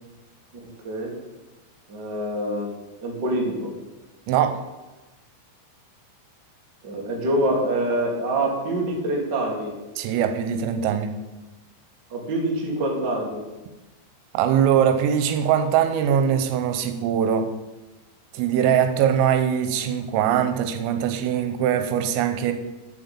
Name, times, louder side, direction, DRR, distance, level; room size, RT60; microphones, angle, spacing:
voice 1, 1.9-2.7 3.0-3.7 6.8-9.7 12.1-13.4, right 1 dB, 60° right, -1 dB, 1.1 m, -25 dB
voice 2, 4.3-4.6 10.0-11.2 14.4-17.5 18.3-22.5, right 9 dB, 85° right, 8 dB, 3.5 m, -22 dB
8.6 x 7.5 x 7.2 m, 1.1 s
omnidirectional pair, 5.9 m